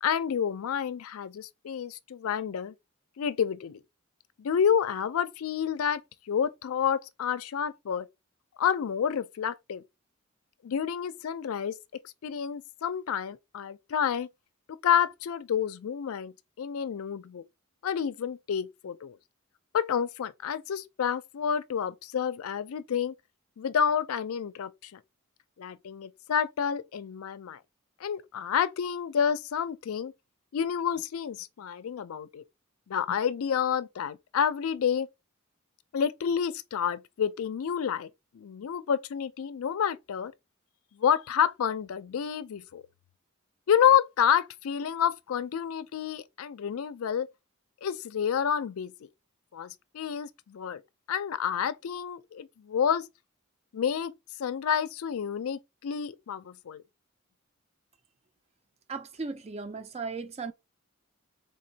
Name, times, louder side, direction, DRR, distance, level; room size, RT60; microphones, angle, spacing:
voice 1, 0.0-2.7 3.2-3.8 4.4-6.0 6.3-8.1 8.6-9.8 10.6-11.7 12.2-14.3 14.7-16.3 16.6-17.4 17.8-19.2 19.7-23.1 23.6-25.0 25.6-27.6 28.0-30.1 30.5-32.4 32.9-35.1 35.9-38.1 38.3-40.3 41.0-42.8 43.7-47.3 47.8-48.9 49.5-50.8 51.1-53.1 53.7-54.1 54.4-56.8, left 8 dB, 80° left, 0.4 m, -29 dB
voice 2, 58.9-60.5, right 4 dB, 30° right, 0.4 m, -36 dB
3.8 x 2.9 x 2.7 m
head